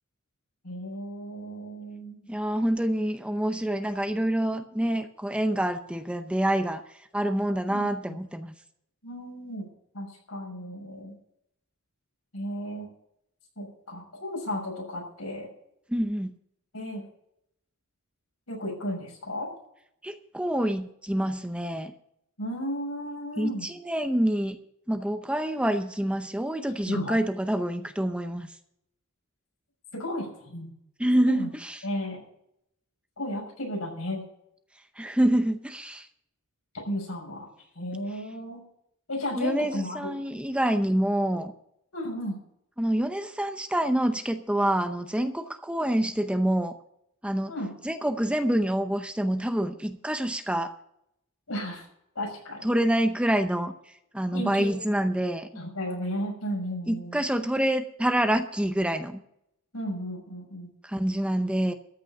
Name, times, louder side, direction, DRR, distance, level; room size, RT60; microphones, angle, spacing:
voice 1, 0.6-2.2 7.7-8.2 9.0-9.7 9.9-11.2 12.3-12.9 13.6-15.5 16.7-17.0 18.5-19.5 22.4-23.7 26.9-27.2 29.9-30.7 31.3-31.5 31.8-32.2 33.2-34.2 36.7-37.5 37.7-38.6 39.1-40.1 41.9-42.3 47.5-47.7 51.5-51.9 52.1-52.7 54.3-54.8 55.6-57.2 59.7-60.7, equal, 85° left, 0 dB, 6.1 m, -34 dB
voice 2, 2.3-6.8 7.1-8.5 15.9-16.3 20.0-21.9 23.4-24.6 24.9-28.6 31.0-31.8 35.0-36.1 39.3-41.5 42.8-46.7 47.2-47.5 47.8-50.7 52.6-53.7 54.1-55.5 56.9-59.2 60.8-61.7, right 1 dB, 5° right, 8 dB, 0.7 m, -27 dB
14.0 x 6.3 x 9.6 m, 0.75 s
head